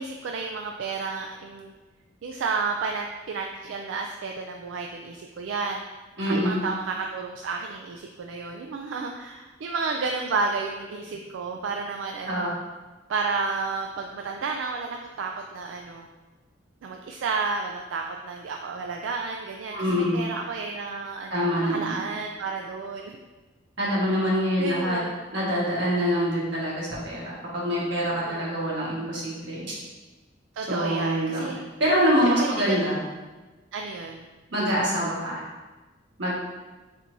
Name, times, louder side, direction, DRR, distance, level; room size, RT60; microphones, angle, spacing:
voice 1, 0.0-1.7 2.2-5.8 6.3-12.5 13.1-16.1 16.8-23.2 24.6-25.2 28.2-28.6 30.5-31.6 32.2-32.9 33.7-34.3, right 4 dB, 85° right, 2 dB, 0.3 m, -31 dB
voice 2, 6.2-6.6 12.2-12.5 19.7-20.2 21.3-22.0 23.8-25.0 25.3-29.8 30.7-31.5 31.8-33.0 34.5-35.4 36.2-36.3, equal, 70° right, -6 dB, 1.5 m, -25 dB
4.6 x 4.3 x 2.6 m, 1.2 s
head